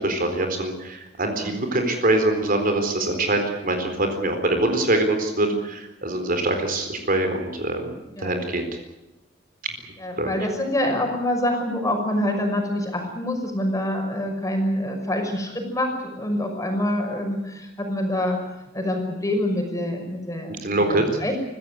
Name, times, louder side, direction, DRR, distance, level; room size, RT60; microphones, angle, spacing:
voice 1, 0.0-8.7 10.2-10.3 20.6-21.0, right 2 dB, 50° right, 6 dB, 4.1 m, -24 dB
voice 2, 10.0-18.4 18.7-21.4, left 1 dB, 20° left, 3 dB, 5.9 m, -26 dB
24.5 x 15.5 x 9.7 m, 0.99 s
head